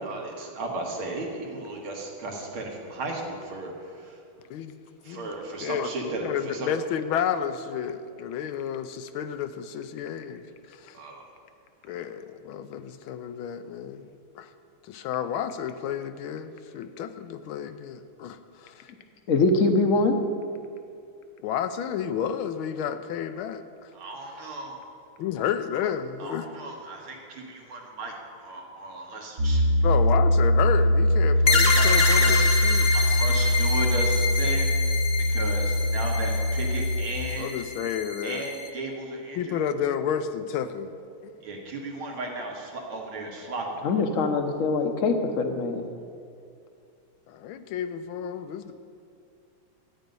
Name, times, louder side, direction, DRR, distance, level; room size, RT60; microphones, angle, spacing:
voice 1, 0.0-4.2 5.0-6.7 10.9-11.2 11.9-12.0 23.9-24.8 26.2-29.6 31.7-32.5 32.9-34.7 35.1-37.5 38.2-39.6 41.4-43.9, right 2 dB, 80° right, 0 dB, 2.4 m, -35 dB
voice 2, 6.2-11.0 11.8-14.1 14.3-14.5 14.8-18.9 21.4-23.9 25.2-26.5 29.8-33.2 37.4-38.5 39.3-40.9 41.2-41.3 47.3-48.7, left 8 dB, 80° left, 11 dB, 1.4 m, -31 dB
voice 3, 19.3-20.2 43.8-45.9, left 3 dB, 50° left, 6 dB, 1.0 m, -23 dB
Piano, 29.4-37.1, left 1 dB, 50° right, 1.1 m, -22 dB
sound 1, 31.5-38.7, left 4 dB, 30° left, 0.9 m, -27 dB
13.5 x 9.2 x 5.3 m, 2.4 s
omnidirectional pair, 2.3 m